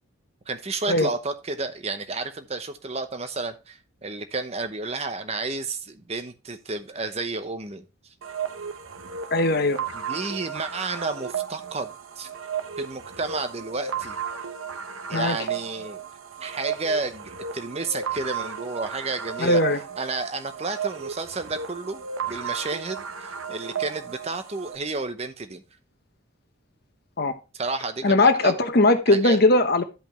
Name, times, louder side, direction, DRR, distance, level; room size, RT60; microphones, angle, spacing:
voice 1, 0.5-7.8 9.9-11.9 12.2-12.3 12.8-14.2 15.1-16.0 16.4-19.6 20.0-25.6 27.5-28.7 29.1-29.4, right 3 dB, 30° right, 0.8 m, -31 dB
sound 1, 8.2-24.8, right 7 dB, 85° right, 0.8 m, -34 dB
voice 2, 9.3-9.8 15.1-15.4 19.4-19.8 27.2-27.3 28.0-29.8, left 2 dB, 50° left, 0.9 m, -19 dB
12.5 x 5.2 x 3.0 m
head